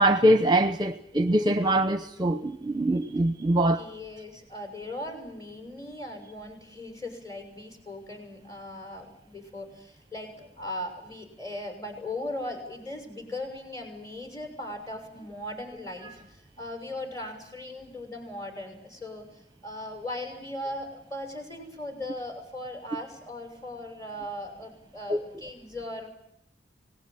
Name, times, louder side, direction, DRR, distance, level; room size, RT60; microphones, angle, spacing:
voice 1, 0.0-3.9 25.1-25.2, right 1 dB, 25° right, 0.9 m, -23 dB
voice 2, 3.7-26.1, left 1 dB, 20° left, 6.2 m, -38 dB
25.5 x 19.5 x 8.9 m
head